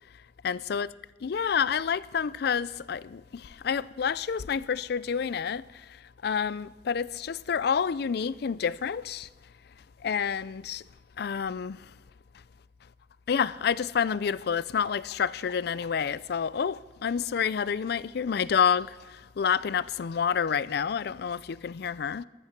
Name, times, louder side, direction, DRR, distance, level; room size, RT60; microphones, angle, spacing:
voice 1, 0.4-0.9 1.2-5.6 6.2-9.3 10.0-10.8 11.2-11.9 13.3-22.2, left 7 dB, 60° left, 0.4 m, -28 dB
14.0 x 13.0 x 5.9 m
head